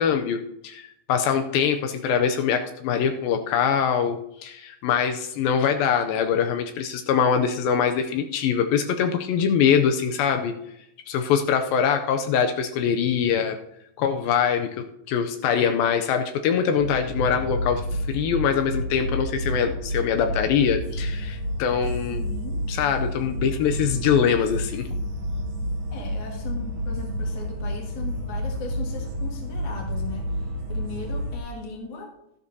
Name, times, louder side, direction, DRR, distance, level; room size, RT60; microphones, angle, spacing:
voice 1, 0.0-10.5 11.1-13.6 14.0-17.8 18.1-22.2 22.7-24.9, left 7 dB, 80° left, 6 dB, 2.4 m, -23 dB
sound 1, 16.8-31.4, equal, 55° right, 2.2 m, -30 dB
voice 2, 22.1-22.6 25.9-32.1, left 4 dB, 40° left, 0 dB, 1.8 m, -38 dB
12.5 x 11.5 x 2.8 m, 0.80 s
omnidirectional pair, 4.3 m